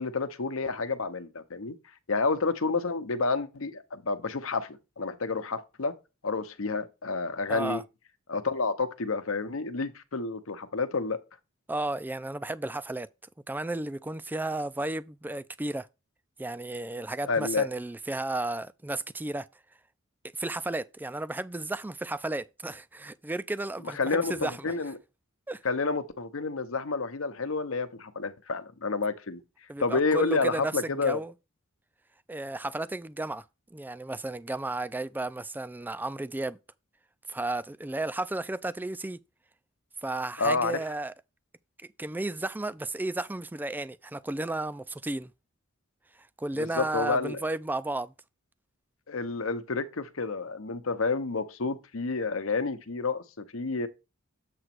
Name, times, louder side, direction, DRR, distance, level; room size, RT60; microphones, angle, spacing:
voice 1, 0.0-1.8 2.1-6.0 6.2-7.8 8.3-11.2 17.2-17.7 23.9-25.0 25.6-29.4 29.8-31.2 40.4-40.8 46.6-47.4 49.1-53.9, left 4 dB, 75° left, 0.9 m, -29 dB
voice 2, 7.5-7.8 11.7-13.1 13.5-15.9 16.4-19.5 20.3-24.6 25.5-25.6 29.7-31.3 32.3-33.4 33.7-36.6 37.3-39.2 40.0-41.1 42.0-45.3 46.4-48.1, right 2 dB, 10° right, 0.3 m, -33 dB
7.8 x 3.0 x 5.9 m
head